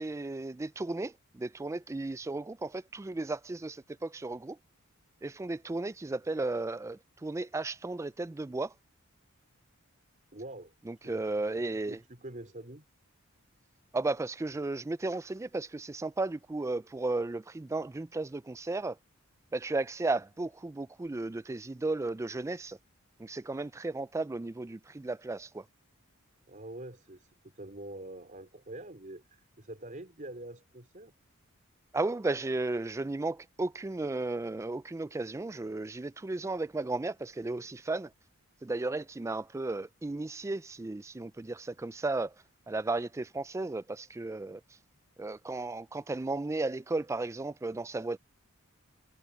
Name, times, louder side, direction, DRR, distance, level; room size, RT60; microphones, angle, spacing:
voice 1, 0.0-4.6 5.2-8.7 10.9-12.0 13.9-19.0 19.5-22.8 23.2-25.6 31.9-38.1 38.6-42.3 42.7-44.6 45.2-48.2, right 2 dB, 15° right, 0.3 m, -34 dB
voice 2, 10.3-10.7 11.0-11.4 11.9-12.8 26.5-31.1, right 1 dB, 35° right, 4.5 m, -45 dB
head